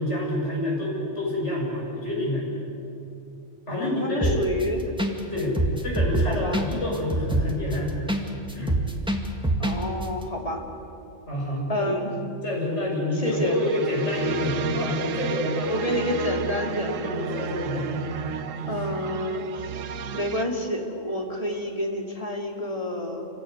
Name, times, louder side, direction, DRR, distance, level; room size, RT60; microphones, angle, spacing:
voice 1, 0.0-2.5 3.7-4.6 5.3-5.6 5.8-8.0 8.5-8.8 11.3-12.0 12.4-16.0 16.8-18.1 18.5-18.7, left 1 dB, 65° left, -3 dB, 7.0 m, -28 dB
voice 2, 3.7-4.9 6.2-6.7 9.6-10.7 11.7-12.1 13.1-13.6 15.7-17.2 18.7-19.7 20.1-23.3, left 1 dB, 30° left, 1 dB, 2.9 m, -29 dB
sound 1, 4.2-4.6 5.0-5.1 5.4-8.2 8.5-9.8 10.0-10.1, right 1 dB, 5° right, 1.9 m, -24 dB
sound 2, 13.2-20.4, right 7 dB, 85° right, 1.2 m, -33 dB
28.0 x 16.5 x 9.5 m, 2.7 s
omnidirectional pair, 1.3 m